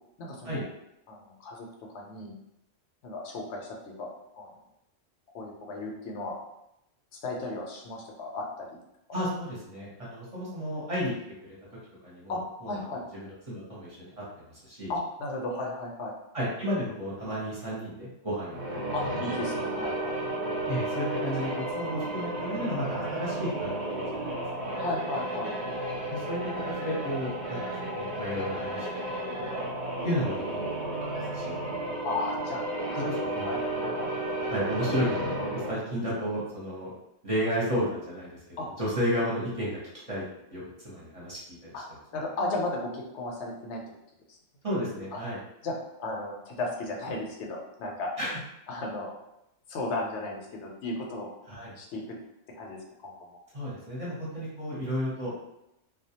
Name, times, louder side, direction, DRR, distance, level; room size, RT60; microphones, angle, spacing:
voice 1, 0.2-0.6 1.1-1.7 1.9-2.3 3.0-4.1 4.4-4.5 5.3-6.4 7.2-8.7 12.3-12.4 12.6-13.0 14.9-16.1 18.9-20.2 24.8-25.5 32.0-32.6 32.9-33.1 33.4-34.1 38.6-38.7 41.7-41.8 42.1-43.8 44.3-44.4 45.1-45.2 45.6-48.1 48.7-49.1 49.7-51.3 51.8-52.2 52.5-53.3, left 2 dB, 70° left, 0 dB, 0.8 m, -35 dB
voice 2, 9.1-11.1 12.0-12.7 13.5-14.1 14.5-14.9 16.3-18.8 20.7-24.3 24.7-24.8 26.1-26.4 26.8-28.9 30.0-31.6 33.0-33.5 34.5-36.9 37.2-38.3 38.8-39.8 40.1-40.2 40.5-41.4 41.7-41.8 44.6-45.4 48.2-48.4 51.5-51.7 53.5-55.3, equal, 35° right, -8 dB, 0.7 m, -32 dB
Low Mens Choir Chop and Reversed, 18.4-35.9, right 1 dB, 70° right, 0.8 m, -33 dB
2.3 x 2.1 x 2.8 m, 0.85 s
omnidirectional pair, 1.2 m